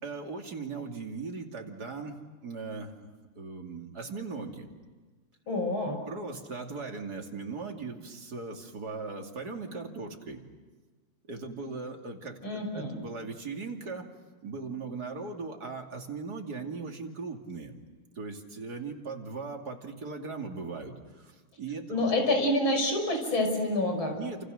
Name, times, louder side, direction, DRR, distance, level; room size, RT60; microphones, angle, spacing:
voice 1, 0.0-2.1 2.4-2.9 3.4-4.7 6.1-10.4 11.2-14.1 14.4-17.7 18.2-22.1 24.1-24.4, right 4 dB, 50° right, 2 dB, 3.1 m, -38 dB
voice 2, 5.5-6.0 12.4-13.0 21.9-24.2, left 1 dB, 70° left, 3 dB, 6.6 m, -27 dB
29.0 x 28.0 x 6.5 m, 1.4 s
omnidirectional pair, 2.3 m